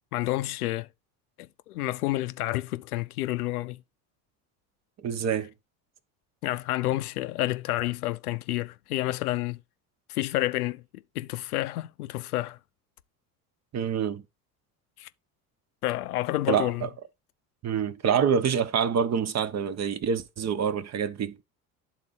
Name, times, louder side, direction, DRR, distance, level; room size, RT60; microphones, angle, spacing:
voice 1, 0.1-0.9 1.4-3.8 6.4-9.6 10.1-10.8 11.1-12.6 15.0-15.1 15.8-16.9, left 17 dB, 85° left, 0.7 m, -29 dB
voice 2, 5.0-5.5 13.7-14.2 16.5-16.9 17.6-21.4, right 7 dB, 35° right, 1.0 m, -26 dB
10.5 x 3.9 x 4.0 m
hypercardioid pair, 70°, 44 cm